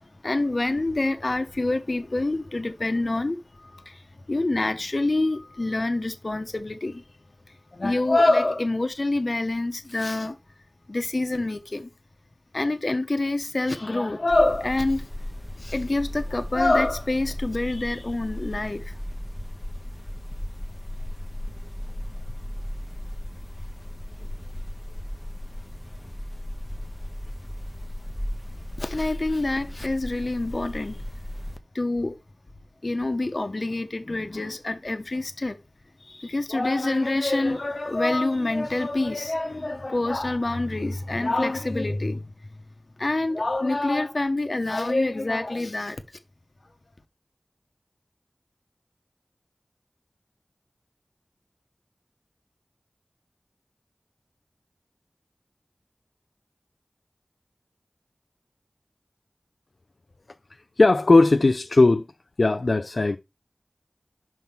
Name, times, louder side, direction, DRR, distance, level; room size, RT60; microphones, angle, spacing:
voice 1, 0.0-4.0 4.3-7.0 7.7-10.4 10.9-11.9 12.5-15.0 15.6-18.9 28.8-31.0 31.7-32.1 32.8-35.6 36.0-42.3 43.0-46.0, left 2 dB, 65° left, 1.0 m, -26 dB
sound 1, 14.3-31.6, left 1 dB, 25° left, 0.8 m, -35 dB
voice 2, 60.8-62.1 62.4-63.2, left 2 dB, 80° left, 0.4 m, -18 dB
5.8 x 3.5 x 5.9 m
wide cardioid pair, 40°, 0 cm